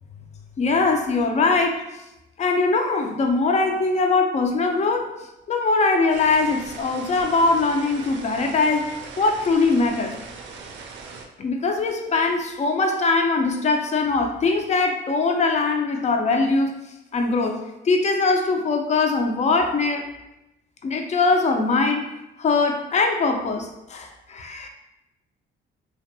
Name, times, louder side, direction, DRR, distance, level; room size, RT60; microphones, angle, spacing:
voice 1, 0.6-1.8 2.4-5.1 5.5-10.2 11.4-16.8 17.1-20.1 20.8-24.7, left 3 dB, 35° left, 4 dB, 0.4 m, -22 dB
sound 1, 6.1-11.3, right 4 dB, 65° right, 0.4 m, -40 dB
2.5 x 2.2 x 2.6 m, 0.94 s
cardioid pair, 90°, 20 cm